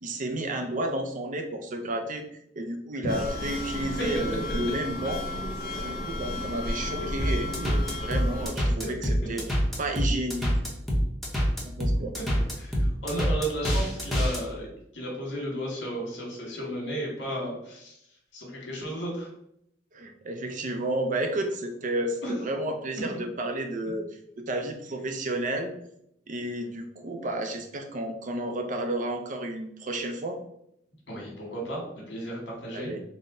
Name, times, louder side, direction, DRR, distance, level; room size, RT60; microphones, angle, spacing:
voice 1, 0.0-2.2 2.6-5.2 5.8-9.5 9.8-10.5 11.6-12.1 19.9-24.1 24.4-25.7 26.3-30.4 32.7-33.0, right 1 dB, 45° right, 5 dB, 0.6 m, -31 dB
sound 1, 3.1-8.5, left 1 dB, 55° left, 1.0 m, -33 dB
sound 2, 7.2-14.4, equal, ahead, 0.8 m, -25 dB
voice 2, 12.6-14.7 14.9-18.0 18.3-19.3 22.2-22.3 31.1-32.9, right 1 dB, 90° left, -2 dB, 1.5 m, -34 dB
4.1 x 2.2 x 3.7 m, 0.75 s
head